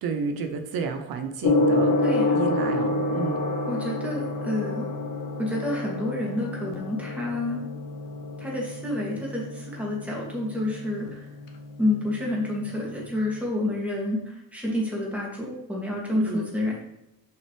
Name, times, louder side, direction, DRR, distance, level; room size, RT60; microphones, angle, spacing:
voice 1, 0.0-1.9 2.3-3.4 14.7-14.8 16.1-16.4, right 5 dB, 85° right, 6 dB, 0.8 m, -31 dB
Gong, 1.4-13.4, left 2 dB, 65° left, 1.0 m, -29 dB
voice 2, 2.0-2.4 3.7-4.9 5.4-7.6 8.4-11.2 11.8-16.8, left 1 dB, 5° right, -3 dB, 2.3 m, -29 dB
6.5 x 5.7 x 3.3 m, 0.85 s
cardioid pair, 130°, 35 cm